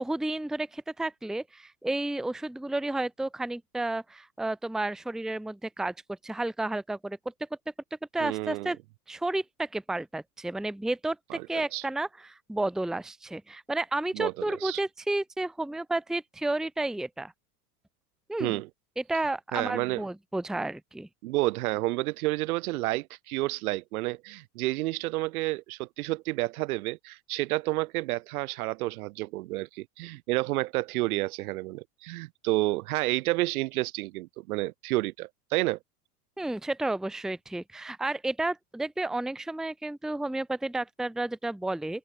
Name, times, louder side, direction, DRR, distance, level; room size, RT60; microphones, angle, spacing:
voice 1, 0.0-7.2 8.1-8.8 9.1-11.2 11.5-17.3 18.3-18.6 19.0-21.1 36.4-42.0, right 2 dB, ahead, 1.0 m, -31 dB
voice 2, 8.2-8.7 11.3-11.5 11.7-11.8 14.1-14.8 18.4-18.7 19.5-20.0 21.2-35.8, right 20 dB, 70° right, 2.2 m, -30 dB
open air
hypercardioid pair, 115°, 46 cm